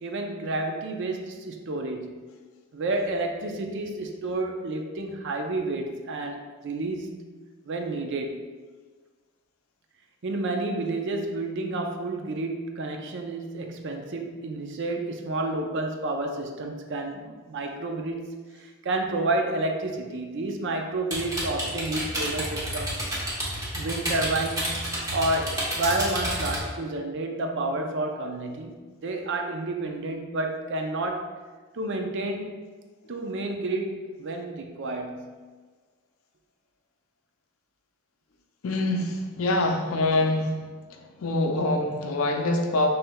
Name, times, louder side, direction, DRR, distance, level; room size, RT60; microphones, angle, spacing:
voice 1, 0.0-2.3 2.7-7.2 7.6-8.4 10.2-23.0 23.8-28.7 29.0-31.3 31.7-32.6 33.1-35.4, right 2 dB, 60° right, 4 dB, 0.5 m, -30 dB
sound 1, 21.1-26.6, right 1 dB, 20° right, 1.0 m, -30 dB
voice 2, 38.6-40.6 40.9-42.9, left 2 dB, 80° left, 4 dB, 0.5 m, -25 dB
5.8 x 3.3 x 2.2 m, 1.4 s
head